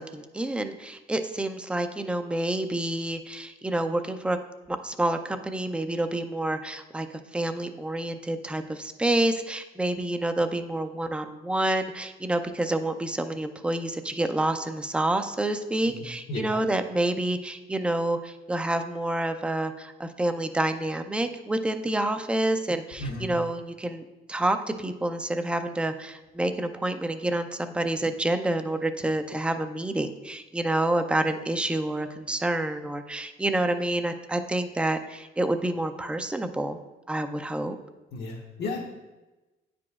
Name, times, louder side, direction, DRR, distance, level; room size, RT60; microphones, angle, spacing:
voice 1, 0.0-4.4 4.7-7.1 7.3-24.0 24.3-36.8 37.1-37.8, right 1 dB, 5° right, 8 dB, 0.4 m, -28 dB
voice 2, 23.0-23.4 38.1-38.8, left 2 dB, 70° left, -3 dB, 1.0 m, -33 dB
9.2 x 5.0 x 2.4 m, 1.1 s
cardioid pair, 110°, 17 cm